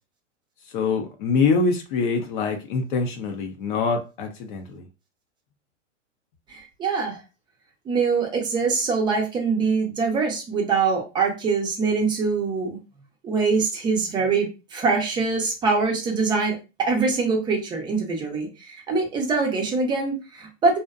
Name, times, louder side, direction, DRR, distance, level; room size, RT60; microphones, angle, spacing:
voice 1, 0.7-4.8, left 4 dB, 45° left, 0.5 m, -24 dB
voice 2, 6.5-7.2 7.9-12.8 13.2-20.8, right 4 dB, 10° right, 0.5 m, -24 dB
2.5 x 2.1 x 2.4 m
hypercardioid pair, 130°, 37 cm